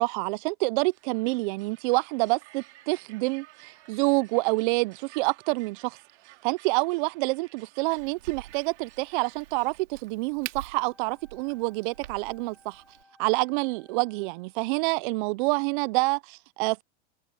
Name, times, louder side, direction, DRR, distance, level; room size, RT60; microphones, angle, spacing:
voice 1, 0.0-6.0 6.4-12.8 13.2-16.8, right 26 dB, 45° right, 0.4 m, -27 dB
sound 1, 0.9-9.8, right 18 dB, 70° right, 4.1 m, -55 dB
Crack, 8.0-13.0, right 12 dB, 85° right, 4.0 m, -46 dB
Wind instrument woodwind instrument, 10.8-14.6, left 1 dB, 5° left, 3.2 m, -61 dB
supercardioid pair, 135°, 36 cm